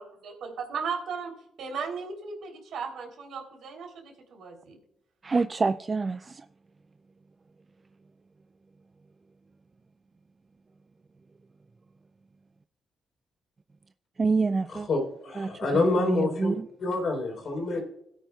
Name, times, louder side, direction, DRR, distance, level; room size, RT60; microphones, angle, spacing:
voice 1, 0.0-1.3 1.6-4.8, right 5 dB, 70° right, 3.3 m, -36 dB
voice 2, 5.2-6.5 14.2-14.9 15.4-16.7, right 4 dB, 30° right, 0.3 m, -27 dB
voice 3, 14.9-16.5 16.8-17.8, left 2 dB, 55° left, 3.9 m, -27 dB
16.5 x 9.2 x 2.3 m
cardioid pair, 90°, 0 cm